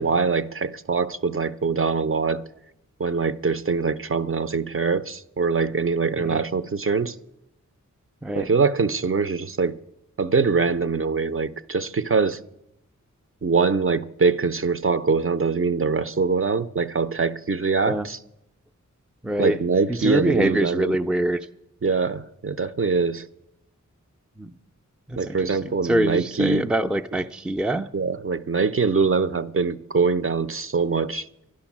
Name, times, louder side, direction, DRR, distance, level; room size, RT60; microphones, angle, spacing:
voice 1, 0.0-2.4 3.0-7.2 8.3-9.8 10.2-12.4 13.4-18.2 19.4-21.0 21.8-23.3 25.2-26.7 27.9-31.3, right 4 dB, 45° right, 0.6 m, -23 dB
voice 2, 8.2-8.6 17.9-18.1 19.2-19.6 19.9-21.5 24.4-24.5 25.1-27.9, right 1 dB, 5° right, 0.5 m, -25 dB
11.5 x 11.0 x 7.3 m
wide cardioid pair, 95°, 31 cm